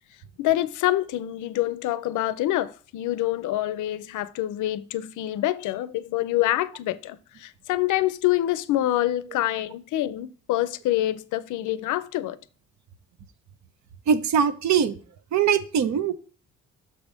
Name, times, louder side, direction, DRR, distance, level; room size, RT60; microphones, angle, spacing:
voice 1, 0.4-12.4, left 14 dB, 85° left, 0.5 m, -26 dB
voice 2, 14.1-15.0 15.3-16.1, right 7 dB, 65° right, 0.7 m, -22 dB
6.7 x 3.5 x 5.1 m
cardioid pair, 90°, 30 cm